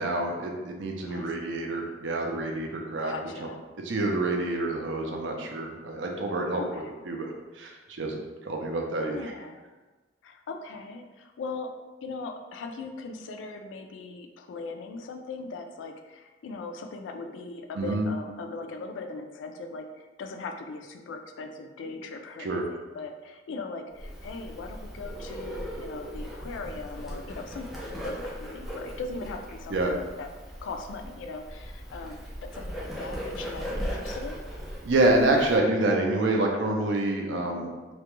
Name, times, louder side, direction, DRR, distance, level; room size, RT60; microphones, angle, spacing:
voice 1, 0.0-3.1 3.4-3.5 3.8-6.6 7.1-7.3 7.6-9.3 17.8-18.1 22.4-22.6 29.7-29.9 34.8-37.7, right 2 dB, 70° right, 1 dB, 0.4 m, -27 dB
voice 2, 1.1-1.5 3.0-3.6 6.6-6.9 9.1-9.6 10.2-11.7 12.0-27.7 28.0-30.3 30.6-32.2 32.5-34.4 37.3-37.8, left 3 dB, 75° left, 5 dB, 0.3 m, -39 dB
Bird, 24.0-35.6, equal, ahead, 0.4 m, -38 dB
2.3 x 2.1 x 2.9 m, 1.2 s
head